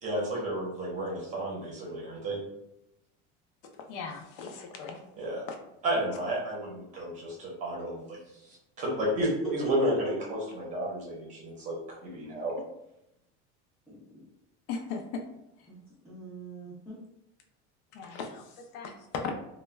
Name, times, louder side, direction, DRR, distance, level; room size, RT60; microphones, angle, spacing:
voice 1, 0.0-2.4 5.2-5.4 5.8-8.2 8.4-9.3 9.5-12.6, equal, 25° right, -4 dB, 0.7 m, -32 dB
voice 2, 3.9-5.0 5.5-5.6 14.7-15.2 17.9-19.3, left 5 dB, 65° left, 3 dB, 0.5 m, -37 dB
voice 3, 9.2-9.9 13.9-14.2 15.7-15.8 16.0-17.0, right 3 dB, ahead, -11 dB, 0.3 m, -38 dB
2.2 x 2.1 x 3.2 m, 0.85 s
cardioid pair, 175°, 31 cm